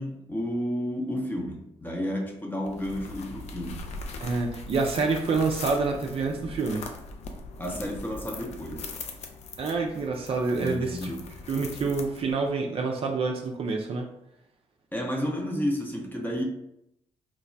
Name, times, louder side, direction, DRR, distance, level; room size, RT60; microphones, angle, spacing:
voice 1, 0.0-3.9 7.6-8.9 10.6-11.3 14.9-16.4, equal, 15° left, 0 dB, 0.6 m, -31 dB
sound 1, 2.6-12.5, left 3 dB, 60° left, 0.4 m, -41 dB
voice 2, 4.2-6.9 9.6-11.1 11.5-14.1, right 4 dB, 50° right, 1 dB, 0.4 m, -27 dB
3.1 x 2.1 x 2.5 m, 0.81 s
hypercardioid pair, 40°, 13 cm